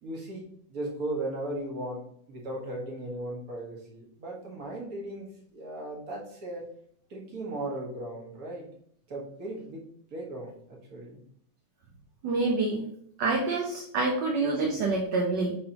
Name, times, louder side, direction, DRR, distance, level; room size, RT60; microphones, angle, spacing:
voice 1, 0.0-0.4 0.7-2.0 2.3-6.7 7.1-8.7 9.1-9.8 10.1-11.2, right 1 dB, 45° right, -2 dB, 2.1 m, -37 dB
voice 2, 12.2-12.9 13.2-15.6, right 3 dB, 65° right, -1 dB, 1.5 m, -27 dB
9.1 x 3.8 x 2.9 m, 0.67 s
omnidirectional pair, 2.2 m